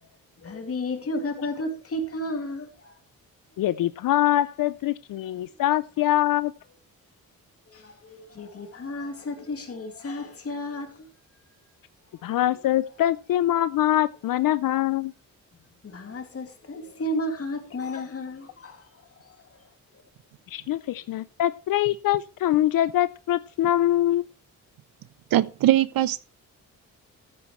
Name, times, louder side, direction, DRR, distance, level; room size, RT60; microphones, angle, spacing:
voice 1, 0.4-2.9 7.7-11.1 12.2-12.4 15.8-18.9 19.2-19.4, left 1 dB, 40° left, 2.4 m, -33 dB
voice 2, 3.6-6.5 12.2-15.1 20.5-24.3, left 13 dB, 70° left, 0.5 m, -24 dB
voice 3, 25.3-26.2, right 14 dB, 80° right, 0.7 m, -21 dB
14.0 x 8.2 x 3.1 m
cardioid pair, 100°, 34 cm